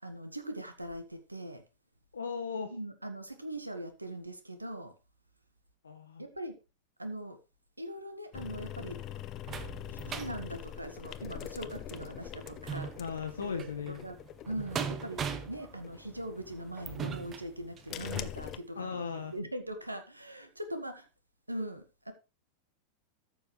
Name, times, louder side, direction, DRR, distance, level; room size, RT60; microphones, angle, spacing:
voice 1, 0.0-1.6 2.7-4.9 6.2-6.5 7.0-7.4 7.8-9.0 9.9-12.9 13.5-13.7 14.0-14.2 14.4-21.1 21.5-22.1, right 1 dB, 85° right, 8 dB, 1.4 m, -41 dB
voice 2, 2.1-2.7 5.8-6.3 13.0-14.0 18.7-19.3, left 6 dB, 70° left, 4 dB, 1.1 m, -37 dB
sound 1, 8.3-18.6, left 12 dB, 35° left, 0.6 m, -44 dB
sound 2, 8.5-18.4 18.9-19.0 19.4-19.5, right 7 dB, 25° right, 1.1 m, -42 dB
14.0 x 7.0 x 3.2 m, 0.29 s
figure-of-eight pair, 90°, 0 cm